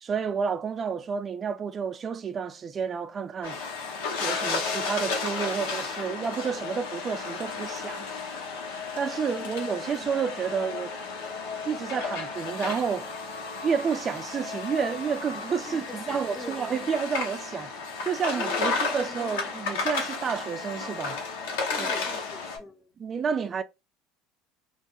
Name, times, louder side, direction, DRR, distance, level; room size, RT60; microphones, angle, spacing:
voice 1, 0.0-3.6 4.2-8.1 9.0-11.0 11.6-13.1 13.6-17.7 18.1-21.2 21.8-21.9 23.0-23.6, right 6 dB, 35° right, 0.4 m, -30 dB
sound 1, 3.4-22.6, left 4 dB, 75° left, 0.7 m, -33 dB
voice 2, 15.7-16.9 17.7-19.8 21.7-22.9, left 1 dB, 10° left, 0.8 m, -44 dB
2.2 x 2.1 x 2.9 m
hypercardioid pair, 75°, 0 cm